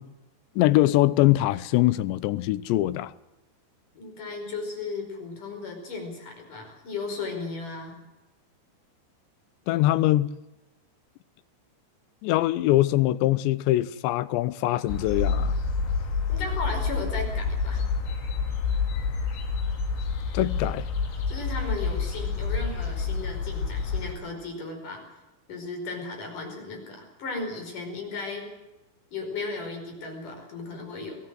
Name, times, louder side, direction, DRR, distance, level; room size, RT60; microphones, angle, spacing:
voice 1, 0.6-3.1 9.7-10.3 12.2-15.5 20.3-20.9, left 16 dB, 85° left, 3.1 m, -23 dB
voice 2, 3.9-8.0 16.3-17.8 21.3-25.1 25.5-28.5 29.1-31.2, left 3 dB, 50° left, 6.4 m, -35 dB
sound 1, 14.9-24.1, left 5 dB, 70° left, 4.7 m, -28 dB
22.5 x 16.0 x 7.7 m
omnidirectional pair, 5.0 m